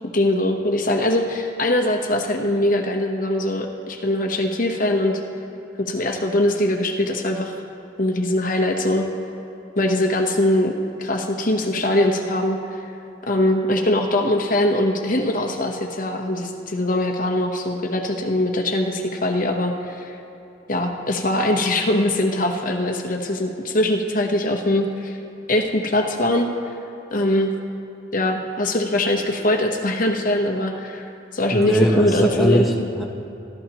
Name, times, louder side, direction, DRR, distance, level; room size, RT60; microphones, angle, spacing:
voice 1, 0.1-5.2 5.9-7.6 8.0-9.1 9.8-10.7 11.0-12.8 13.3-20.2 20.7-25.2 25.5-26.7 27.1-27.5 28.1-31.1 31.3-32.7, left 1 dB, 40° left, 3 dB, 1.0 m, -22 dB
voice 2, 31.5-33.0, equal, ahead, -1 dB, 1.0 m, -20 dB
26.0 x 12.5 x 3.0 m, 2.8 s
head